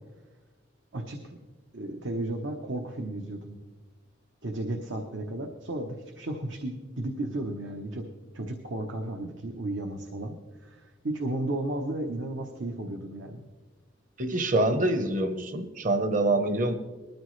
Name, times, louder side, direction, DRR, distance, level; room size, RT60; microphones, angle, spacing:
voice 1, 0.9-1.4 1.7-3.6 4.4-8.0 8.3-10.4 10.6-13.4, right 1 dB, 75° right, 4 dB, 1.1 m, -34 dB
voice 2, 14.2-16.8, right 2 dB, 40° right, 9 dB, 1.0 m, -25 dB
20.0 x 13.5 x 3.2 m, 1.3 s
head